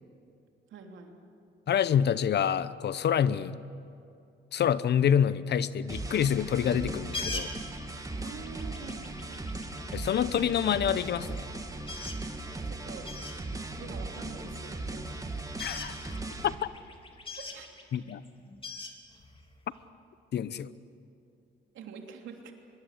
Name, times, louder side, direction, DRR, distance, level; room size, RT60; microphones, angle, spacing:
voice 1, 0.7-1.2 8.1-9.4 12.6-13.1 13.8-15.3 16.2-16.4 17.4-17.7 21.7-22.5, right 6 dB, 75° right, 3 dB, 3.1 m, -46 dB
voice 2, 1.7-3.6 4.5-7.5 9.9-11.5 15.6-16.2 17.9-18.2 20.3-20.7, left 8 dB, 60° left, 16 dB, 0.8 m, -27 dB
sound 1, 5.9-16.5, right 2 dB, 15° right, 1.9 m, -38 dB
sound 2, 6.9-10.4 11.0-11.1 11.4-11.5 11.7-12.3 12.6-12.7 13.0-13.4 14.1-14.9 15.2-19.8, left 3 dB, 25° left, 3.0 m, -41 dB
24.0 x 22.0 x 8.4 m, 2.5 s
cardioid pair, 90°, 20 cm